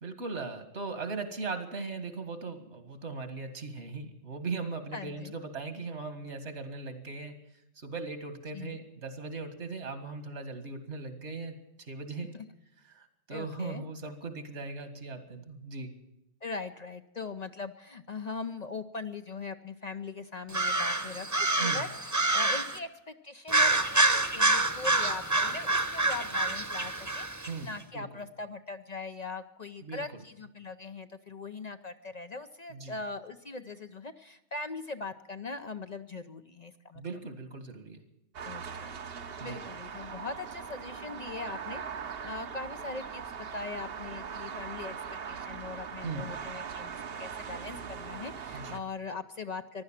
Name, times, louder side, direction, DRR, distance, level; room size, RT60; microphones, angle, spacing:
voice 1, 0.0-7.4 7.8-12.3 12.9-15.9 21.6-21.8 27.5-28.0 29.8-30.0 32.7-33.0 37.0-38.0 39.4-39.6 46.0-46.3 48.5-48.8, right 4 dB, 75° right, 8 dB, 2.2 m, -39 dB
voice 2, 4.9-5.3 8.5-8.8 12.3-12.5 13.3-13.8 16.4-37.0 38.4-38.9 39.2-44.9 45.3-49.8, left 3 dB, 45° left, 8 dB, 0.7 m, -41 dB
sound 1, 20.5-22.8 23.5-27.5, right 2 dB, 15° right, 1.0 m, -27 dB
sound 2, 38.3-48.8, right 6 dB, 60° right, 1.1 m, -40 dB
15.0 x 12.0 x 7.3 m, 0.88 s
omnidirectional pair, 1.2 m